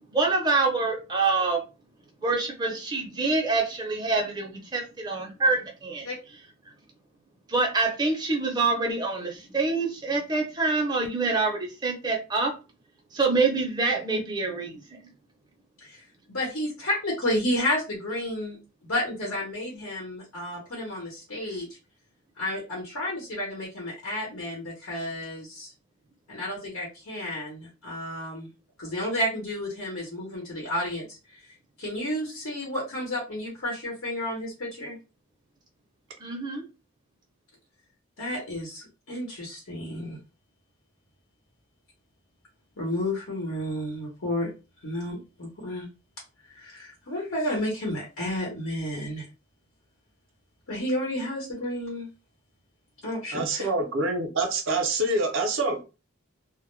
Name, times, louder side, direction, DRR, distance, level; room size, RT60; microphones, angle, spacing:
voice 1, 0.1-1.6 2.2-6.1 7.5-12.5 13.1-15.1 36.2-36.6, right 3 dB, 20° right, 0.5 m, -26 dB
voice 2, 16.3-18.6 18.8-21.7 22.4-25.7 26.3-28.5 28.8-31.4 31.8-35.0 38.2-40.2 42.8-44.5 44.8-45.9 46.5-49.3 50.7-52.1 53.0-53.7, left 1 dB, 75° left, 0.9 m, -31 dB
voice 3, 53.3-55.8, right 2 dB, 65° right, 0.5 m, -26 dB
2.1 x 2.0 x 3.0 m
head